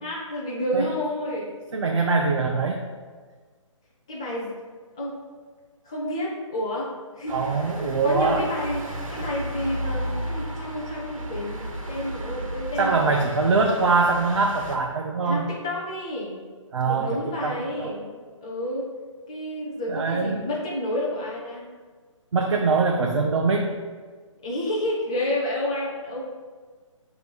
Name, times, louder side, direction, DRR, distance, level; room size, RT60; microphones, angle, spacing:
voice 1, 0.0-1.5 4.1-4.5 5.0-5.2 5.8-6.9 7.2-7.4 7.7-7.8 8.0-8.8 9.1-13.1 15.2-16.4 16.8-18.9 19.3-21.7 22.5-22.8 24.4-26.2, left 1 dB, 10° left, -5 dB, 0.4 m, -30 dB
voice 2, 1.7-2.9 7.3-8.5 12.8-15.4 16.7-18.0 19.9-20.5 22.3-23.7, right 4 dB, 60° right, 1 dB, 0.6 m, -23 dB
sound 1, 7.3-14.8, equal, 85° right, 1.4 m, -34 dB
7.5 x 3.1 x 5.3 m, 1.5 s
hypercardioid pair, 170°, 17 cm